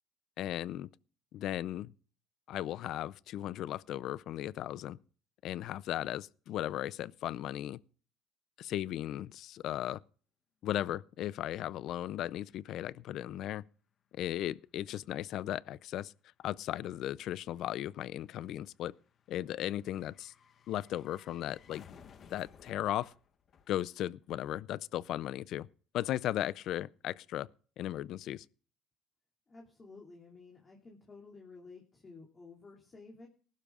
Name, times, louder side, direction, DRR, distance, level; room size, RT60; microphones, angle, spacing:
voice 1, 0.4-0.9 1.3-1.9 2.5-5.0 5.4-7.8 8.6-10.0 10.6-13.6 14.2-16.1 16.4-18.9 19.3-20.3 20.7-21.8 22.3-23.1 23.7-25.7 25.9-27.5 27.8-28.4, left 12 dB, 60° left, 0.5 m, -36 dB
sound 1, 13.8-13.9 14.1-24.5 24.7-24.8, left 7 dB, 45° left, 1.4 m, -60 dB
voice 2, 29.5-33.3, left 3 dB, 25° left, 2.8 m, -53 dB
20.0 x 12.0 x 2.5 m
cardioid pair, 120°, 0 cm